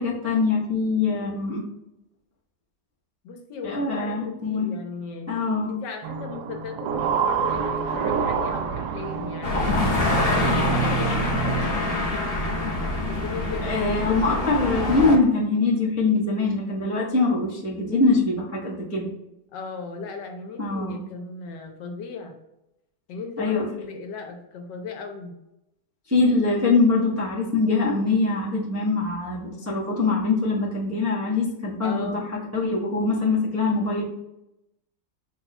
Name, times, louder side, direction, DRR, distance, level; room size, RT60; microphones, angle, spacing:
voice 1, 0.0-1.6 3.6-4.7 5.3-5.8 13.6-19.1 20.6-21.0 23.4-23.7 26.1-32.2 32.5-34.0, left 3 dB, 20° right, -7 dB, 0.4 m, -23 dB
voice 2, 3.2-4.2 4.4-5.3 5.7-9.7 10.2-12.3 13.1-13.7 19.5-22.4 23.1-25.4 31.8-32.2, left 4 dB, 75° left, 4 dB, 1.3 m, -37 dB
sound 1, 6.0-11.8, right 7 dB, 75° right, 1.0 m, -27 dB
sound 2, 9.4-15.2, left 2 dB, 45° left, 0.8 m, -25 dB
5.2 x 2.3 x 4.0 m, 0.87 s
omnidirectional pair, 2.1 m